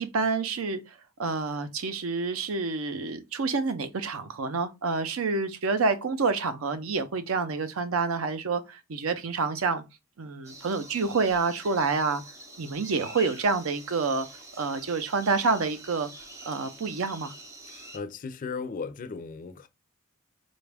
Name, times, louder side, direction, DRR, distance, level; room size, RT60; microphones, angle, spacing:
voice 1, 0.0-9.8 10.2-12.2 12.6-14.3 14.6-16.1 16.5-17.3, right 4 dB, 75° right, 0.5 m, -28 dB
sound 1, 10.4-18.0, right 1 dB, 15° right, 0.7 m, -46 dB
voice 2, 17.7-19.7, left 5 dB, 40° left, 0.4 m, -36 dB
4.0 x 2.3 x 3.3 m
head